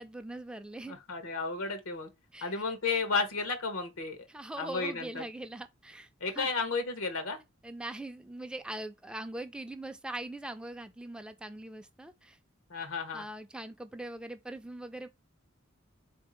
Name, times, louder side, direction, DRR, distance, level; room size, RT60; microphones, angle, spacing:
voice 1, 0.0-1.0 2.3-2.5 4.3-6.1 6.3-6.5 7.6-12.4 13.1-15.1, right 1 dB, 5° right, 0.4 m, -41 dB
voice 2, 0.9-2.1 2.4-4.2 4.6-5.2 6.2-7.4 12.7-13.2, left 4 dB, 85° left, 0.9 m, -33 dB
4.0 x 2.7 x 3.7 m
head